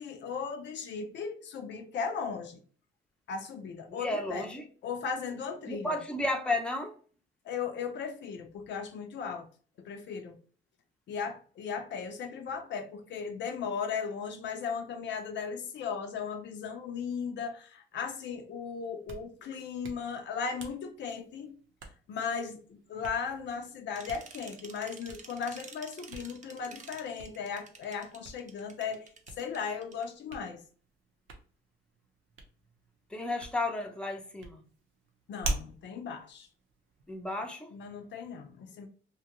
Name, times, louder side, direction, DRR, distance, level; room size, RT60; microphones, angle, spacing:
voice 1, 0.0-2.6 3.3-4.5 4.8-6.0 7.4-9.5 9.8-10.4 11.1-21.5 22.1-29.1 29.4-30.6 35.3-36.5 37.7-38.9, left 6 dB, 65° left, 0.5 m, -37 dB
voice 2, 3.9-4.6 5.7-6.9 33.1-34.6 37.1-37.7, left 2 dB, 5° left, 0.6 m, -33 dB
Hands, 18.8-37.4, right 2 dB, 85° right, 0.7 m, -46 dB
sound 1, 24.0-30.0, right 5 dB, 35° right, 0.6 m, -50 dB
2.8 x 2.2 x 2.9 m
cardioid pair, 90°, 20 cm